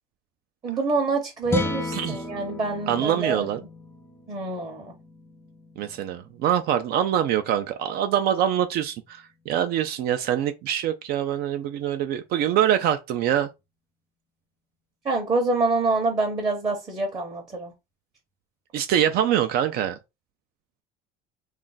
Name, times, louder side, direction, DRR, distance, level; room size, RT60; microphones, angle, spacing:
voice 1, 0.6-3.5 4.3-4.9 15.0-17.7, right 3 dB, 20° right, 0.7 m, -26 dB
sound 1, 1.4-7.8, left 2 dB, 10° left, 0.5 m, -35 dB
voice 2, 1.9-2.2 2.9-3.6 5.8-13.5 18.7-20.0, right 10 dB, 55° right, 0.4 m, -24 dB
2.4 x 2.2 x 3.8 m
cardioid pair, 140°, 19 cm